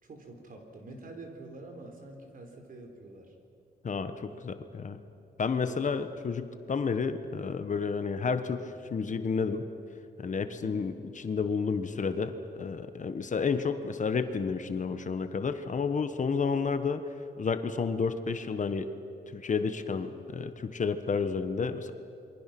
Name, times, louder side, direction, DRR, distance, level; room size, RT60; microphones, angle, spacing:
voice 1, 0.0-3.4 4.2-4.4 4.8-5.0 5.7-5.9 10.5-10.8, right 2 dB, 55° right, 3 dB, 4.5 m, -47 dB
voice 2, 3.8-5.0 5.4-9.7 10.2-17.0 17.4-18.9 19.3-21.9, left 5 dB, 45° left, 9 dB, 1.3 m, -31 dB
28.0 x 23.5 x 6.1 m, 2.6 s
cardioid pair, 100°, 17 cm